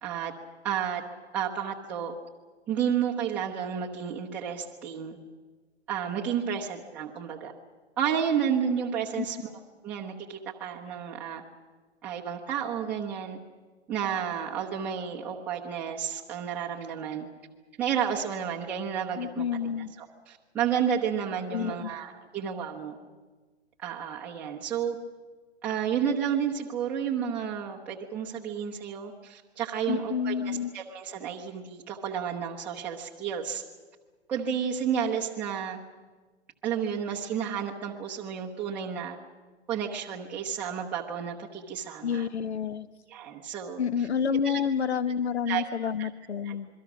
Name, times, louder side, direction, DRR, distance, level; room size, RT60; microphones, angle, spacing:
voice 1, 0.0-0.3 0.6-1.0 1.3-2.1 2.7-5.2 5.9-7.5 8.0-11.4 12.0-13.4 13.9-17.3 17.8-23.0 23.8-25.0 25.6-33.6 34.3-35.8 36.6-39.2 39.7-42.3 43.1-44.1 44.4-44.6 45.1-45.2 45.5-45.6 46.0-46.1 46.4-46.6, right 8 dB, 5° right, -4 dB, 0.8 m, -31 dB
voice 2, 19.2-19.9 21.5-21.9 29.9-30.7 42.0-42.9 43.8-46.7, left 7 dB, 70° left, 14 dB, 1.4 m, -29 dB
27.0 x 22.5 x 6.1 m, 1.4 s
hypercardioid pair, 170°, 34 cm